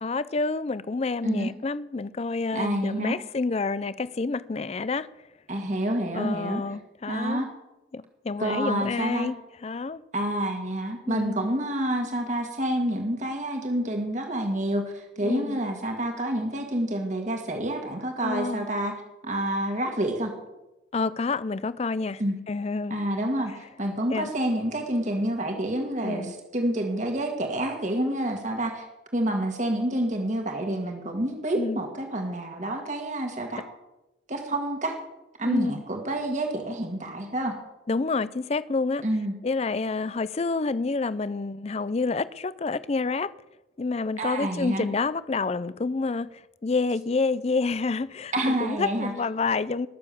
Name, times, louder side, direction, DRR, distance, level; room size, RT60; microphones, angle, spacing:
voice 1, 0.0-5.1 6.1-7.4 7.9-10.0 11.1-11.5 15.2-15.6 18.2-18.7 20.9-22.2 22.5-23.0 24.1-24.3 26.0-26.3 31.5-31.8 35.4-35.8 37.9-39.0 39.4-43.3 43.8-49.9, left 3 dB, 35° left, 0.4 m, -28 dB
voice 2, 2.5-3.2 5.5-6.6 7.1-7.5 8.4-9.3 10.1-19.0 19.2-20.3 22.2-22.4 22.9-28.9 29.1-33.6 34.3-35.0 35.4-37.6 39.0-39.3 44.2-44.9 48.3-49.1, right 1 dB, 40° right, 1.9 m, -28 dB
20.5 x 7.1 x 6.9 m
head